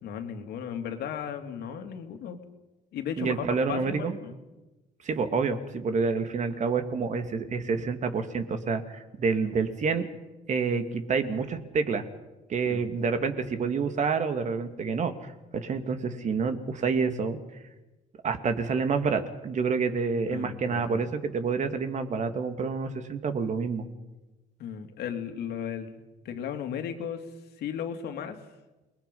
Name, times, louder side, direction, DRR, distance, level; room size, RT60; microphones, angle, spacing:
voice 1, 0.0-2.4 2.9-4.3 12.7-12.9 20.3-21.1 24.6-27.3 27.6-28.4, left 8 dB, 75° left, 5 dB, 2.8 m, -35 dB
voice 2, 3.2-4.2 5.0-10.1 10.5-12.1 12.5-17.4 18.2-23.9, right 5 dB, 45° right, 8 dB, 2.3 m, -28 dB
28.5 x 21.0 x 5.5 m, 1.1 s
cardioid pair, 110°, 17 cm